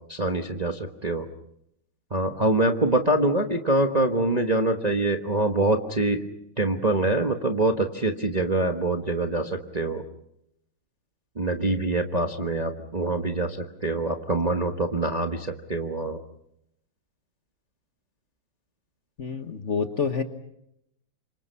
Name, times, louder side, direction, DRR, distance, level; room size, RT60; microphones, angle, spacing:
voice 1, 0.1-1.3 2.1-6.2 6.6-10.0 11.4-16.2, right 2 dB, 25° right, 4 dB, 1.0 m, -25 dB
voice 2, 19.2-20.2, left 5 dB, 40° left, 7 dB, 1.3 m, -27 dB
29.0 x 25.5 x 5.7 m, 0.78 s
omnidirectional pair, 2.2 m